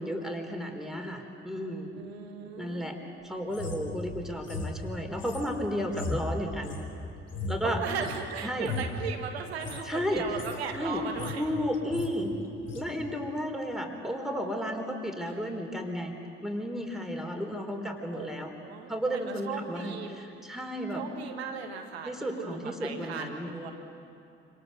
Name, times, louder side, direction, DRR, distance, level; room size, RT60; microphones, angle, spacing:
voice 1, 0.0-2.0 2.6-3.0 3.2-6.8 7.5-7.8 8.4-8.7 9.8-10.2 10.7-11.0 11.4-12.3 12.7-16.1 16.4-18.5 18.9-21.0 22.0-23.5, equal, ahead, 2 dB, 3.9 m, -33 dB
voice 2, 1.9-2.9 7.6-11.5 15.3-15.4 18.1-18.3 18.6-20.2 20.9-23.7, right 6 dB, 80° right, 5 dB, 1.7 m, -37 dB
sound 1, 3.5-8.3 8.6-9.0 9.5-9.8 10.2-10.6 10.9-11.5 11.7-12.1 12.6-12.9, left 3 dB, 50° left, 3.3 m, -37 dB
27.0 x 26.5 x 6.7 m, 2.6 s
figure-of-eight pair, 45°, 31 cm